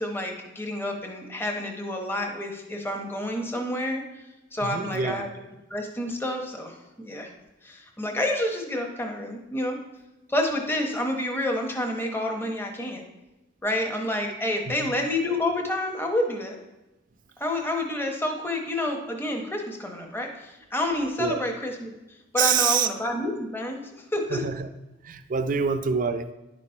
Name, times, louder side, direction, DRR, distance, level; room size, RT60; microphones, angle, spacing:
voice 1, 0.0-4.0 4.5-5.3 5.7-7.3 7.6-9.8 10.3-13.0 13.6-16.6 17.4-21.9 22.3-23.8 24.1-24.4, left 1 dB, 15° left, 2 dB, 0.9 m, -29 dB
voice 2, 4.6-5.2 14.7-14.9 21.2-21.4 22.4-22.9 24.3-24.7 25.0-26.3, right 6 dB, 45° right, 9 dB, 0.4 m, -26 dB
10.5 x 4.1 x 4.3 m, 1.0 s
head